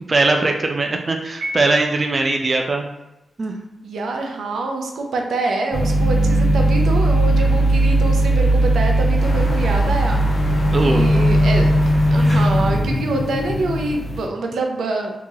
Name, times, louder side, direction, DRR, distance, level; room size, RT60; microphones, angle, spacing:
voice 1, 0.1-2.8 3.4-3.5 10.7-11.2, right 3 dB, 35° right, 3 dB, 0.3 m, -20 dB
Piano, 1.4-2.5, equal, 60° right, 0.9 m, -32 dB
voice 2, 3.8-10.2 10.8-11.7 12.1-15.1, right 2 dB, 85° right, 2 dB, 0.5 m, -25 dB
sound 1, 5.7-14.2, right 1 dB, 25° left, 1.5 m, -17 dB
sound 2, 9.2-13.0, equal, 65° left, 0.9 m, -31 dB
3.7 x 2.9 x 2.7 m, 0.90 s
wide cardioid pair, 120°, 0 cm